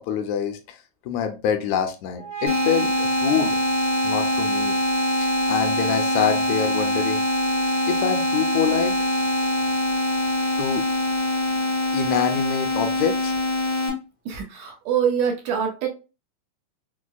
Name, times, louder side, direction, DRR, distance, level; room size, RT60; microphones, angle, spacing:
voice 1, 0.1-0.8 1.1-3.6 4.0-4.8 5.2-7.2 7.6-8.9 10.6-10.9 11.9-13.3, left 8 dB, 80° left, 7 dB, 1.9 m, -26 dB
sound 1, 2.1-13.2, right 3 dB, 65° left, 1.2 m, -29 dB
sound 2, 2.5-13.9, left 2 dB, 35° left, 0.6 m, -25 dB
voice 2, 14.3-15.9, right 7 dB, 80° right, 2 dB, 2.1 m, -24 dB
6.0 x 2.1 x 2.2 m, 0.30 s
omnidirectional pair, 3.3 m